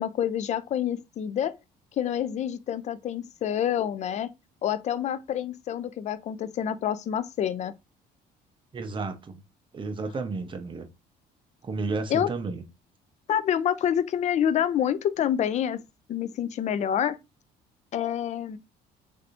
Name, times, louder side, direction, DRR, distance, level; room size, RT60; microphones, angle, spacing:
voice 1, 0.0-1.6 2.0-4.3 4.6-7.7 12.1-12.3 13.3-15.8 16.1-17.2 17.9-18.6, left 9 dB, 45° left, 0.4 m, -27 dB
voice 2, 8.7-9.4 9.7-10.9 11.6-12.6, right 3 dB, 30° right, 0.7 m, -32 dB
3.3 x 2.7 x 2.5 m
cardioid pair, 110°, 17 cm